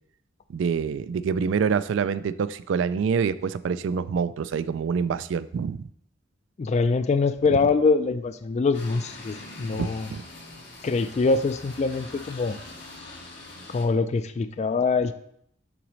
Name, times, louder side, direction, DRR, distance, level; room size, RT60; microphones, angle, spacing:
voice 1, 0.5-5.9 9.7-10.2, right 6 dB, 70° right, 16 dB, 0.3 m, -26 dB
voice 2, 6.6-10.1 10.8-12.6 13.7-15.1, left 4 dB, 35° left, 11 dB, 0.3 m, -24 dB
sound 1, 8.7-13.8, left 2 dB, 65° left, 1.8 m, -43 dB
6.0 x 4.0 x 6.2 m, 0.71 s
head